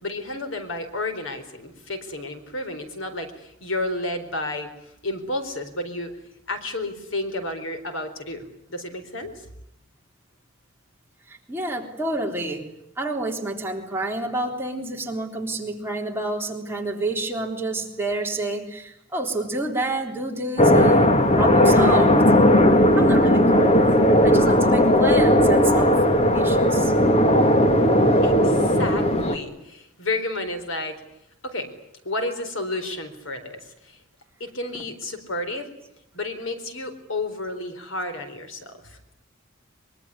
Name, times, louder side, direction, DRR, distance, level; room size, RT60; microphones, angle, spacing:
voice 1, 0.0-6.2 6.5-9.5 28.2-31.0 31.4-31.7 32.0-34.0 34.4-35.7 36.1-39.0, left 2 dB, 70° left, 7 dB, 4.2 m, -31 dB
voice 2, 11.3-12.6 13.0-22.2 23.0-23.9 24.2-26.0 26.3-26.9 34.7-34.8, right 2 dB, 10° right, 0 dB, 3.7 m, -29 dB
sound 1, 20.6-29.4, equal, 30° left, 2.0 m, -17 dB
24.0 x 23.0 x 9.9 m, 0.76 s
head